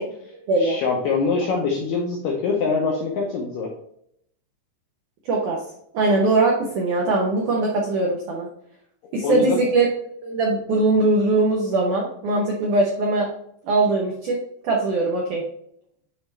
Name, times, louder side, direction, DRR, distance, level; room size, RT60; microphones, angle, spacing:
voice 1, 0.6-3.7 9.2-9.6, left 4 dB, 80° left, -1 dB, 2.0 m, -24 dB
voice 2, 5.3-5.6 5.9-8.5 9.1-9.9 10.2-13.3 13.6-15.4, right 2 dB, 90° right, -1 dB, 1.7 m, -21 dB
8.5 x 4.1 x 3.3 m, 0.73 s
omnidirectional pair, 5.1 m